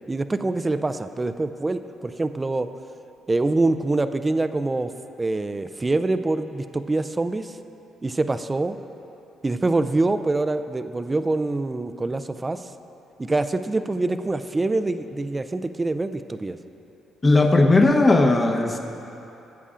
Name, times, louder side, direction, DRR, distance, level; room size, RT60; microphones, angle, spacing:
voice 1, 0.1-2.7 3.3-4.9 5.2-7.6 8.0-8.8 9.4-12.7 13.2-16.6, right 2 dB, 20° right, 10 dB, 0.4 m, -25 dB
voice 2, 17.2-18.8, left 2 dB, 25° left, 2 dB, 0.9 m, -17 dB
17.5 x 8.4 x 2.5 m, 2.9 s
cardioid pair, 90°, 0 cm